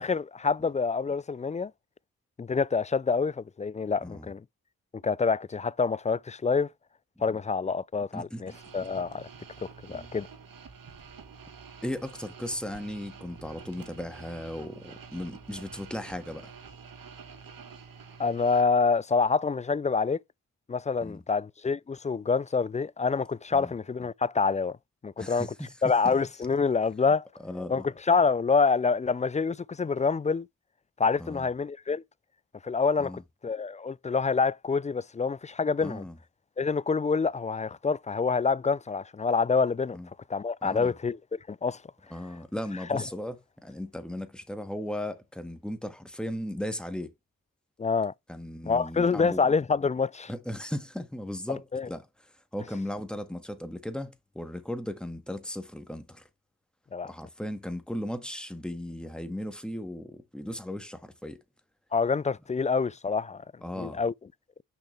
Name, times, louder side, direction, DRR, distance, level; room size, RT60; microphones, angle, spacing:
voice 1, 0.0-1.7 2.4-4.4 4.9-6.7 7.2-9.3 9.8-10.3 18.2-20.2 20.7-24.8 25.0-25.5 25.8-27.3 27.7-30.5 31.0-32.0 32.6-33.1 33.4-36.0 36.6-40.0 40.3-41.8 42.9-43.0 47.8-48.1 48.7-50.3 51.7-51.9 56.9-57.1 61.9-63.4 63.8-64.1, left 5 dB, 20° left, 0.3 m, -27 dB
voice 2, 8.1-8.6 9.9-10.1 11.8-16.5 21.0-21.2 23.5-23.7 25.2-26.1 27.4-27.8 31.2-31.5 33.0-33.2 35.8-36.2 39.9-40.1 40.6-40.9 42.1-43.4 43.6-47.1 48.3-49.4 50.3-52.1 52.5-56.2 57.0-61.4 63.6-64.0, left 1 dB, ahead, 1.7 m, -37 dB
sound 1, 8.5-18.6, right 5 dB, 70° right, 1.7 m, -48 dB
6.7 x 5.7 x 3.3 m
cardioid pair, 45°, 36 cm